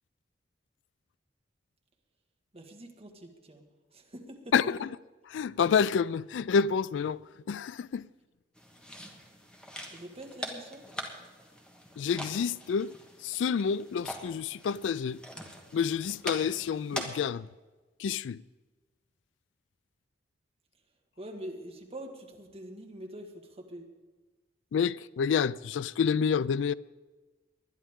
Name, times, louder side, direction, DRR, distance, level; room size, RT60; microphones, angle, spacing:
voice 1, 2.5-3.6 3.9-4.5 9.9-10.8 21.2-23.9, right 1 dB, 35° right, 1.8 m, -44 dB
voice 2, 4.5-4.9 5.3-7.2 7.5-8.1 12.0-12.9 13.2-15.2 15.7-17.5 18.0-18.4 24.7-26.7, left 6 dB, 80° left, 0.3 m, -28 dB
sound 1, 8.5-17.2, equal, 5° left, 1.5 m, -43 dB
20.0 x 11.5 x 3.6 m
head